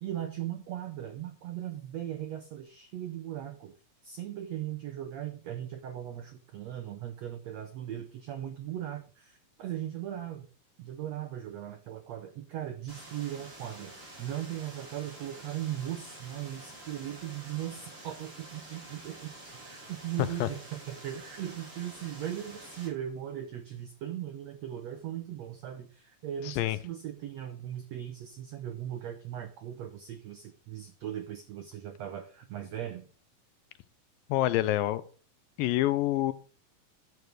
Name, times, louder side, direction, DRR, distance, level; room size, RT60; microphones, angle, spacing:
voice 1, 0.0-3.8 4.0-10.5 10.8-13.9 14.2-33.0, right 11 dB, 80° right, 1.5 m, -38 dB
sound 1, 12.9-22.9, right 2 dB, 35° right, 5.7 m, -48 dB
voice 2, 26.5-26.8 34.3-35.0 35.6-36.3, left 15 dB, 80° left, 2.2 m, -26 dB
11.0 x 6.9 x 4.7 m
omnidirectional pair, 4.2 m